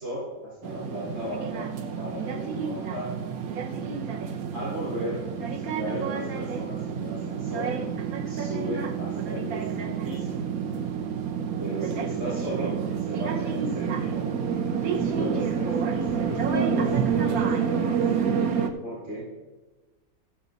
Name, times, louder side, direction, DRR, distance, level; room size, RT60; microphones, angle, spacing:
voice 1, 0.0-1.7 2.0-3.1 4.5-7.7 8.3-10.4 11.6-14.3 14.9-17.9 18.8-19.3, equal, 55° right, -9 dB, 4.8 m, -36 dB
sound 1, 0.6-18.7, right 6 dB, 75° right, 1.3 m, -28 dB
14.5 x 7.0 x 4.0 m, 1.2 s
omnidirectional pair, 1.6 m